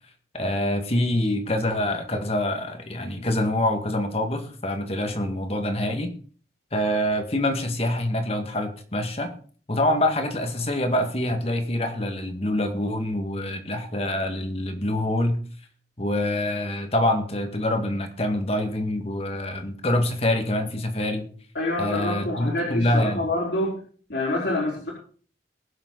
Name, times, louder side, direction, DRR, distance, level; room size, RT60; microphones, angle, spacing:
voice 1, 0.3-6.1 6.7-9.3 9.7-15.4 16.0-21.3 21.8-23.3, left 1 dB, 35° left, 6 dB, 1.9 m, -25 dB
voice 2, 21.5-23.8 24.1-24.9, left 2 dB, 75° left, -6 dB, 4.5 m, -26 dB
21.5 x 7.3 x 4.0 m, 0.43 s
head